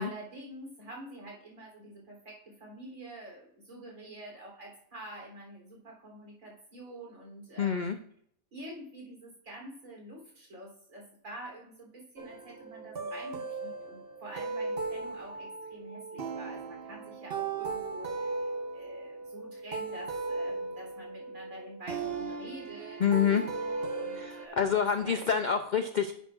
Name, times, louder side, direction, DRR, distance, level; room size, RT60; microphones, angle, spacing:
voice 1, 0.0-8.0 8.5-25.2, right 1 dB, 70° right, -2 dB, 3.9 m, -47 dB
voice 2, 7.6-8.0 23.0-23.5 24.2-26.3, left 7 dB, 65° left, 8 dB, 0.4 m, -27 dB
sound 1, 12.2-24.5, right 4 dB, 50° right, 1.0 m, -37 dB
10.5 x 9.0 x 2.5 m, 0.66 s
omnidirectional pair, 1.5 m